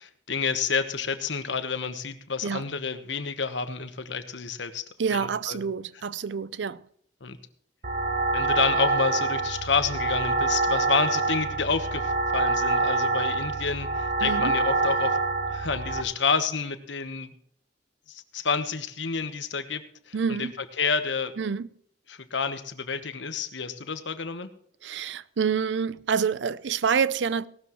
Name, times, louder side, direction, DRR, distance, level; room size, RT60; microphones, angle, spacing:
voice 1, 0.0-4.8 5.2-5.6 7.2-7.4 8.3-15.2 15.5-17.3 18.1-20.5 20.8-21.3 22.1-24.5, left 5 dB, 75° left, 1.2 m, -29 dB
voice 2, 5.0-6.8 14.2-14.5 20.1-20.5 21.4-21.7 24.8-27.5, right 6 dB, 70° right, 0.5 m, -27 dB
sound 1, 7.8-16.0, right 3 dB, 50° right, 1.2 m, -26 dB
18.0 x 12.5 x 3.1 m
head